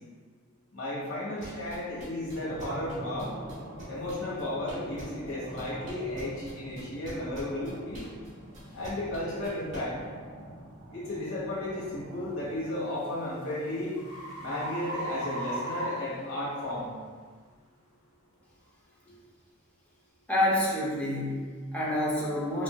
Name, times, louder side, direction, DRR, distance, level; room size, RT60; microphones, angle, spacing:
voice 1, 0.7-3.3 3.9-8.0 8.7-10.0 10.9-13.9 14.4-16.9 19.0-19.2, left 1 dB, 70° left, -8 dB, 1.2 m, -34 dB
sound 1, 1.4-5.3 5.6-9.8, right 1 dB, 35° right, 1.0 m, -45 dB
sound 2, 2.2-12.5, right 1 dB, 50° right, 0.5 m, -45 dB
sound 3, 8.0-8.1 8.7-8.9 9.5-9.7 12.3-16.8, right 1 dB, 90° left, 0.9 m, -38 dB
voice 2, 20.3-22.6, left 1 dB, 5° left, -7 dB, 0.7 m, -28 dB
4.3 x 2.5 x 2.3 m, 1.5 s
head